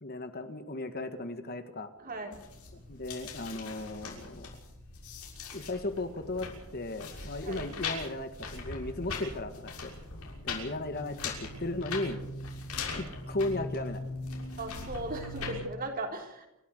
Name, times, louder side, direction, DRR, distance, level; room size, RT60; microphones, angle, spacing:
voice 1, 0.0-1.9 2.7-4.6 5.5-9.9 10.4-12.2 12.9-14.0, left 2 dB, 45° left, 9 dB, 1.7 m, -36 dB
voice 2, 2.0-2.4 7.5-7.7 14.6-16.5, right 1 dB, 40° right, 4 dB, 3.8 m, -37 dB
sound 1, 2.3-15.6, left 3 dB, 85° left, 6.4 m, -40 dB
28.5 x 13.0 x 8.0 m, 0.88 s
head